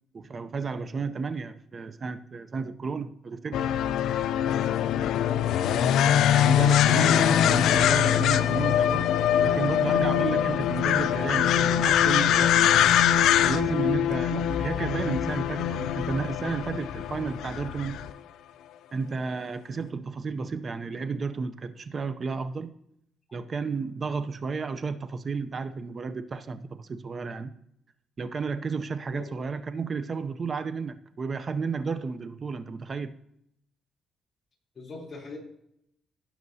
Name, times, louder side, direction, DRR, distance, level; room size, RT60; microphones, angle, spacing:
voice 1, 0.1-3.7 6.3-9.1 9.4-13.0 13.4-18.0 18.9-22.7 23.3-27.5 28.2-33.2, right 4 dB, 35° right, 0.5 m, -32 dB
sound 1, 3.5-18.1, left 10 dB, 80° left, 0.4 m, -23 dB
voice 2, 5.1-6.1 29.1-29.3 34.7-35.4, left 2 dB, 25° left, 3.2 m, -41 dB
17.0 x 5.8 x 2.7 m
cardioid pair, 110°, 0 cm